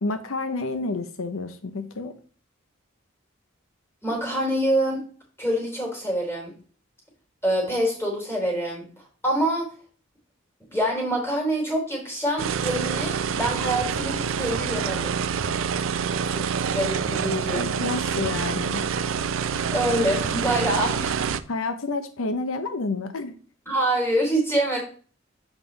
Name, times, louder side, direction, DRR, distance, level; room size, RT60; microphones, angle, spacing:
voice 1, 0.0-2.1 17.5-18.9 21.5-23.3, left 3 dB, 85° left, 10 dB, 0.7 m, -29 dB
voice 2, 4.0-5.0 5.4-6.5 7.4-8.9 9.2-9.7 10.7-15.2 16.2-17.7 19.7-21.2 23.7-24.8, right 1 dB, 10° left, -2 dB, 3.3 m, -25 dB
sound 1, 12.4-21.4, right 6 dB, 75° right, 0.5 m, -27 dB
7.2 x 5.3 x 3.9 m, 0.41 s
head